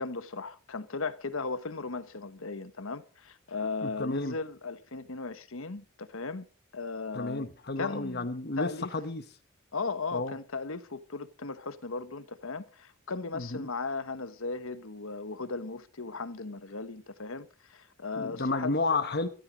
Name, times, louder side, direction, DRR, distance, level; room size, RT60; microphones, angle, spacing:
voice 1, 0.0-6.4 6.7-7.5 7.8-8.3 8.6-8.9 9.7-18.7, left 4 dB, 70° left, 1.2 m, -37 dB
voice 2, 3.8-4.3 7.1-9.2 10.1-10.3 13.3-13.7 18.2-19.3, left 3 dB, 45° left, 1.2 m, -31 dB
13.0 x 13.0 x 5.1 m
head